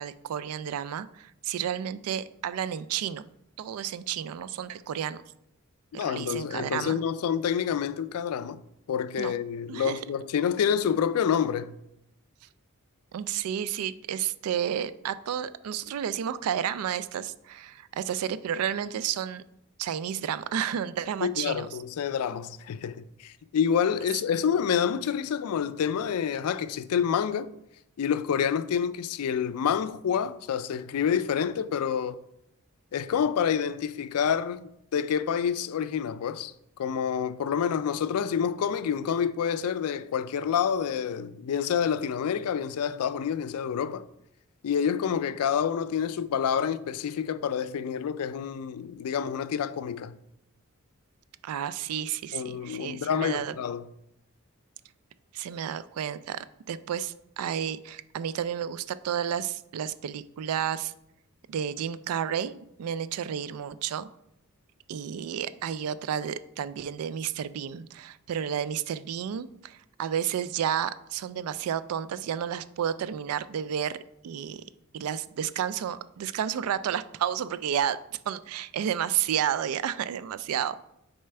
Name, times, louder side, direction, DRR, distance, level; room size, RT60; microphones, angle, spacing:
voice 1, 0.0-3.3 3.6-5.2 5.9-7.0 9.2-9.3 9.7-10.0 13.1-19.4 19.8-21.7 51.4-53.6 55.3-60.9 61.5-64.1 64.9-74.0 74.2-74.6 74.9-80.8, right 9 dB, 80° right, 0.3 m, -31 dB
voice 2, 5.9-8.6 8.9-11.7 21.2-27.5 28.0-32.2 32.9-44.1 44.6-50.2 52.3-53.8, left 7 dB, 80° left, 0.3 m, -28 dB
6.7 x 4.3 x 3.3 m
head